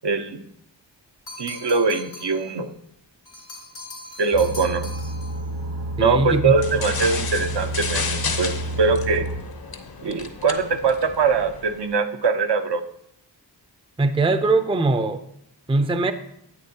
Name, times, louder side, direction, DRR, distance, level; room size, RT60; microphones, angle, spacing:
voice 1, 0.0-0.4 1.4-2.7 4.2-4.9 6.0-8.5 8.8-9.3 10.0-12.8, right 4 dB, 65° right, 7 dB, 0.7 m, -22 dB
sound 1, 1.3-2.5 3.3-5.4, left 2 dB, 85° left, 2.8 m, -40 dB
sound 2, 4.3-9.4, right 1 dB, 90° right, 1.3 m, -30 dB
voice 2, 6.0-6.5 14.0-15.2 15.7-16.1, right 2 dB, 15° right, 9 dB, 0.5 m, -21 dB
sound 3, 6.6-11.9, left 5 dB, 55° left, 0.8 m, -32 dB
9.8 x 8.4 x 2.8 m, 0.73 s
wide cardioid pair, 70°, 44 cm